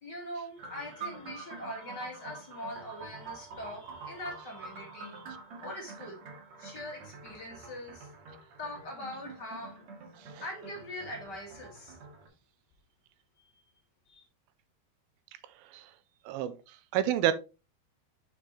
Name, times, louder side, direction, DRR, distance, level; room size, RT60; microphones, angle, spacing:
voice 1, 0.0-6.2 6.6-8.1 8.6-9.9 10.4-12.0 13.4-13.5 14.1-14.2, left 1 dB, 35° left, 2.0 m, -42 dB
sound 1, 0.6-12.3, right 4 dB, 55° right, 2.6 m, -47 dB
voice 2, 16.3-17.3, right 12 dB, 80° right, 2.3 m, -29 dB
6.7 x 6.6 x 3.1 m
omnidirectional pair, 4.5 m